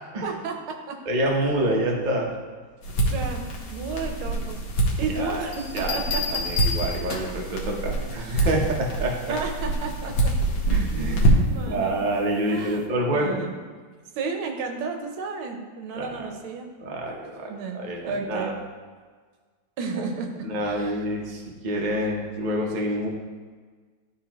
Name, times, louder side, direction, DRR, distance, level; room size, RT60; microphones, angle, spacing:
voice 1, 0.2-0.5 0.9-1.0 3.1-3.4 3.7-4.6 5.0-6.4 9.3-10.3 10.7-10.8 11.5-12.0 12.5-12.8 13.1-13.6 14.2-16.7 17.5-18.5 19.8-21.0, right 4 dB, 75° right, 4 dB, 1.6 m, -32 dB
voice 2, 1.0-2.3 5.1-5.5 5.7-9.4 10.7-13.4 15.9-16.3 16.8-18.6 19.9-20.0 20.4-23.1, right 1 dB, 50° right, -1 dB, 0.5 m, -27 dB
sound 1, 2.8-11.7, right 1 dB, 75° left, 1.9 m, -26 dB
Bell, 5.5-7.5 9.1-9.4, left 5 dB, 55° left, 0.6 m, -31 dB
12.0 x 4.0 x 3.0 m, 1.5 s
omnidirectional pair, 2.3 m